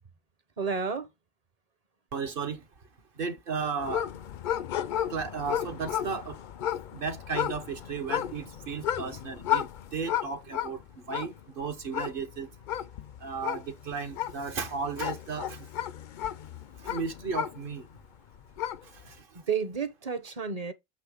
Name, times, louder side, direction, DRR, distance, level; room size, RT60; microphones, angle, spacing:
voice 1, 0.6-1.1 19.3-20.7, right 6 dB, 40° right, 0.8 m, -31 dB
voice 2, 2.1-2.6 3.2-4.1 5.1-6.4 6.9-10.8 11.1-12.5 13.2-15.7 16.8-17.8 19.0-19.1, right 5 dB, 60° right, 1.1 m, -34 dB
two dogs in Denver, 3.8-18.0 18.4-19.0, left 11 dB, 60° left, 0.6 m, -34 dB
7.5 x 3.2 x 4.9 m
omnidirectional pair, 1.1 m